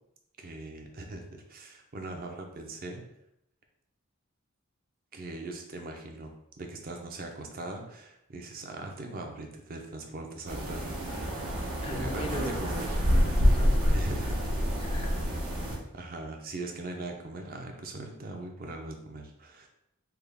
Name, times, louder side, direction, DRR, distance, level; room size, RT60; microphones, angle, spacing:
voice 1, 0.4-3.0 5.1-11.3 11.8-13.0 13.9-14.5 15.9-19.7, right 2 dB, 45° right, 3 dB, 0.5 m, -40 dB
sound 1, 10.5-15.8, equal, 85° right, 1.0 m, -27 dB
voice 2, 11.8-12.5 13.1-14.2 14.8-15.2, left 1 dB, 25° left, 4 dB, 0.4 m, -39 dB
3.4 x 2.3 x 3.4 m, 0.79 s
head